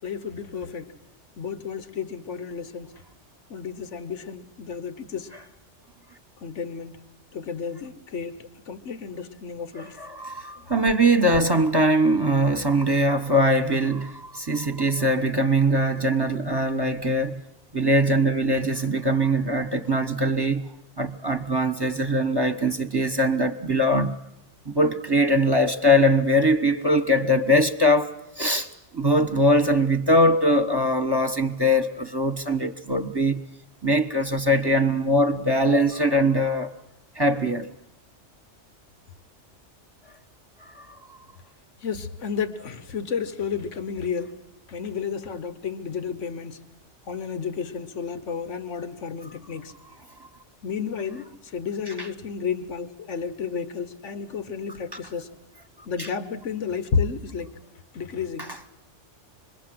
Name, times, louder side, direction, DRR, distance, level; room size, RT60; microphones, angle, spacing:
voice 1, 0.0-0.9 1.4-2.9 3.5-5.3 6.4-7.0 7.3-10.0 41.8-44.4 44.7-46.6 47.1-49.7 50.6-55.3 55.8-57.5 57.9-58.5, left 6 dB, 90° left, 1.5 m, -32 dB
voice 2, 9.8-17.4 17.7-20.7 21.0-24.2 24.6-33.5 33.8-36.7 37.1-37.7 40.6-40.9 52.0-52.1 54.9-55.0 56.0-56.1 58.4-58.6, equal, 20° right, 1.2 m, -22 dB
26.5 x 21.5 x 7.7 m
omnidirectional pair, 1.2 m